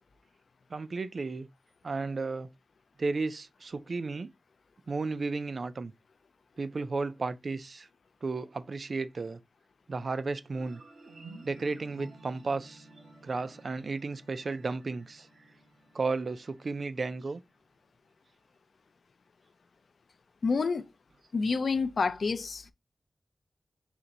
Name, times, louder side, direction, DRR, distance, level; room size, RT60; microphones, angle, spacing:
voice 1, 0.7-1.5 1.8-2.5 3.0-4.3 4.9-5.9 6.6-7.9 8.2-9.4 9.9-10.8 11.4-12.9 13.2-15.3 15.9-17.4, right 3 dB, 50° right, 0.3 m, -33 dB
sound 1, 10.5-17.6, right 2 dB, 85° right, 1.4 m, -53 dB
voice 2, 20.4-20.8 21.3-22.7, left 4 dB, 65° left, 0.4 m, -28 dB
4.3 x 2.6 x 3.8 m
wide cardioid pair, 125°, 0 cm